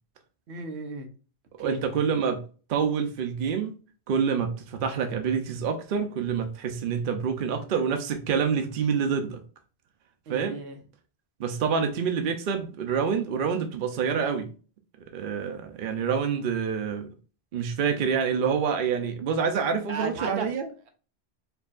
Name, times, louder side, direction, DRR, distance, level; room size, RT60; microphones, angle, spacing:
voice 1, 0.5-1.1 1.6-1.8 10.3-10.8 19.9-20.5, right 3 dB, 85° right, 1.0 m, -35 dB
voice 2, 1.6-2.4 2.7-3.7 4.1-9.4 10.3-10.6 11.4-14.5 15.1-17.1 17.5-20.7, right 6 dB, 60° right, 0.7 m, -27 dB
4.6 x 2.7 x 2.4 m
omnidirectional pair, 1.1 m